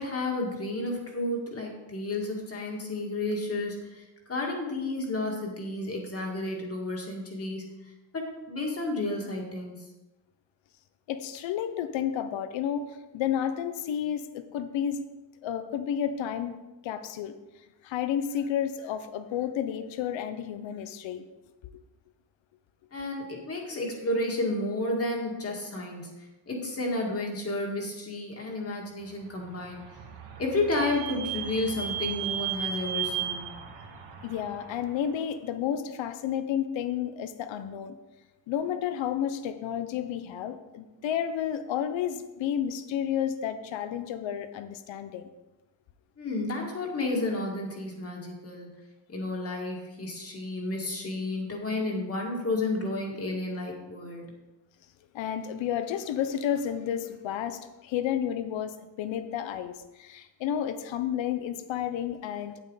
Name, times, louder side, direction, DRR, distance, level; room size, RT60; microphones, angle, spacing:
voice 1, 0.0-4.0 4.3-9.8 22.9-29.8 30.4-33.5 46.2-48.7 49.1-54.2, left 2 dB, 30° left, 0 dB, 2.1 m, -32 dB
voice 2, 11.1-15.0 15.4-16.6 16.8-17.3 17.8-21.2 34.2-38.0 38.5-45.3 55.1-62.6, left 9 dB, 75° left, 10 dB, 0.9 m, -31 dB
Vehicle / Squeak, 29.4-35.0, right 9 dB, 60° right, 1.8 m, -35 dB
8.9 x 8.7 x 4.0 m, 1.0 s
cardioid pair, 145°, 46 cm